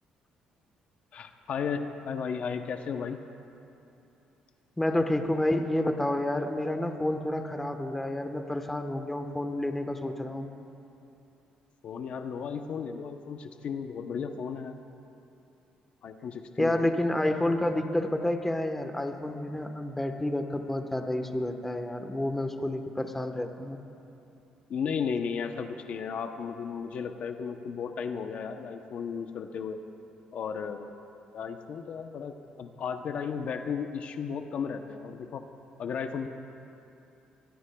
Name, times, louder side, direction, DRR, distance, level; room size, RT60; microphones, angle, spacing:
voice 1, 1.1-3.2 11.8-14.8 16.0-16.9 24.7-29.8 30.3-30.9 31.3-35.4 35.8-36.3, left 6 dB, 60° left, 6 dB, 0.7 m, -34 dB
voice 2, 4.8-10.5 16.6-23.8, left 1 dB, 10° left, 5 dB, 1.1 m, -29 dB
24.0 x 20.0 x 2.3 m, 2.8 s
cardioid pair, 95°, 2 cm